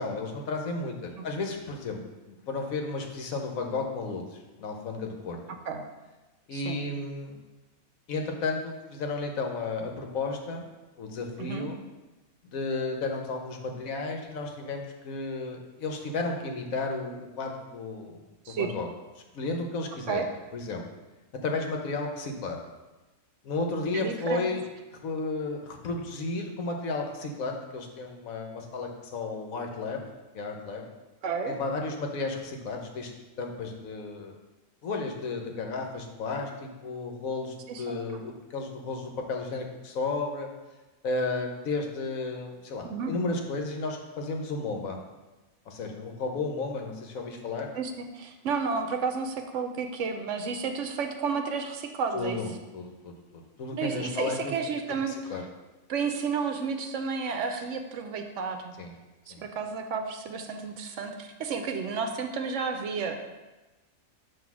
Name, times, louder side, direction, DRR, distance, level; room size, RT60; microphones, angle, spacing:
voice 1, 0.0-2.0 2.3-5.4 6.5-7.4 8.1-10.6 11.0-11.8 12.4-18.2 18.5-18.9 19.3-20.2 20.5-20.8 21.4-22.6 23.4-24.6 25.0-30.0 30.3-30.8 31.5-33.1 33.4-34.3 34.8-40.5 41.0-45.0 45.7-47.7 52.1-54.7 55.1-55.4 58.8-58.9 59.3-59.4, left 3 dB, 75° left, 3 dB, 1.3 m, -33 dB
voice 2, 23.9-24.5 31.2-31.5 37.7-38.0 42.8-43.1 47.7-52.4 53.7-55.1 55.9-58.8 59.3-63.2, right 5 dB, 65° right, 6 dB, 0.9 m, -31 dB
7.6 x 2.7 x 6.0 m, 1.1 s
omnidirectional pair, 1.4 m